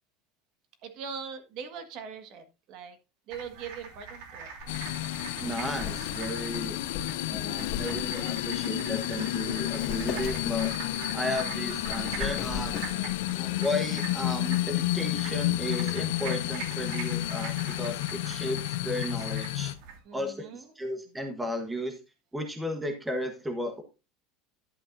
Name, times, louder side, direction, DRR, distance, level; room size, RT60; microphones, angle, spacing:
voice 1, 0.8-3.0 3.3-4.5 7.3-7.9 12.7-13.2 20.0-20.6, right 6 dB, 45° right, 8 dB, 1.7 m, -42 dB
sound 1, 3.3-20.0, right 5 dB, 65° right, 3.1 m, -43 dB
Wind, 4.6-13.3, left 7 dB, 40° left, 2.0 m, -40 dB
sound 2, 4.7-19.7, left 16 dB, 75° left, 0.6 m, -31 dB
voice 2, 5.4-6.8 7.3-12.8 13.3-19.7 20.1-22.0 22.3-23.8, left 1 dB, 5° right, 5 dB, 1.2 m, -34 dB
11.5 x 8.6 x 2.6 m, 0.28 s
supercardioid pair, 165°, 0 cm